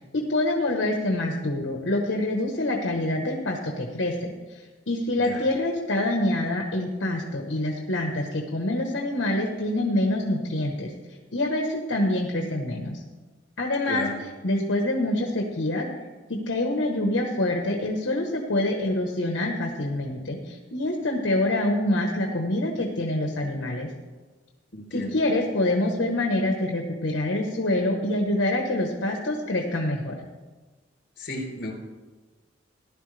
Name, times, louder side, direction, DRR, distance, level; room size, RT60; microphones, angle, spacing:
voice 1, 0.1-10.9 11.3-13.0 13.6-14.1 14.4-15.9 16.5-23.9 24.9-30.2, left 1 dB, 80° left, 1 dB, 1.2 m, -26 dB
voice 2, 13.8-14.1 24.7-25.2 31.2-31.7, left 1 dB, 60° left, 0 dB, 3.6 m, -34 dB
15.5 x 11.5 x 3.3 m, 1.3 s
head